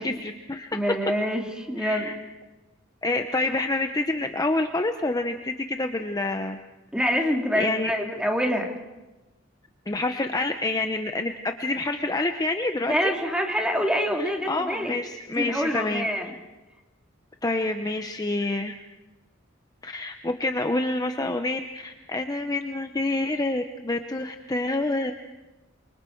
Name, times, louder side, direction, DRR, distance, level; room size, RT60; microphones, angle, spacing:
voice 1, 0.0-0.8 1.8-2.1 3.0-6.6 7.1-7.2 7.6-7.9 9.9-13.1 14.2-16.1 17.4-18.7 19.8-25.1, left 2 dB, 20° left, 6 dB, 0.8 m, -27 dB
voice 2, 0.7-2.1 6.9-8.8 12.9-14.9 15.3-16.3, equal, 5° right, 2 dB, 2.5 m, -26 dB
28.0 x 24.5 x 4.6 m, 1.1 s
head